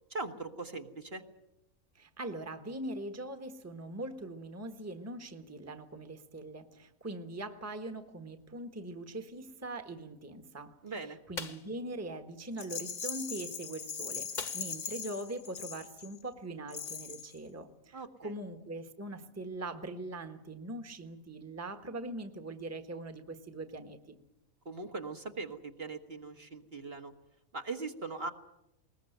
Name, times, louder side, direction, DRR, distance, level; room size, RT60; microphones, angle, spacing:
voice 1, 0.1-1.2 10.8-11.2 17.9-18.3 24.7-27.1 27.5-28.3, right 3 dB, 45° right, 5 dB, 1.7 m, -40 dB
voice 2, 1.9-24.2, right 2 dB, 10° right, 7 dB, 1.3 m, -42 dB
sound 1, 11.3-11.8 14.4-14.9 15.3-15.4 15.8-16.0, left 4 dB, 35° left, 1.4 m, -42 dB
Rattle, 12.6-16.2 16.7-17.4, left 6 dB, 55° left, 1.4 m, -40 dB
21.0 x 20.0 x 9.2 m, 0.87 s
omnidirectional pair, 1.5 m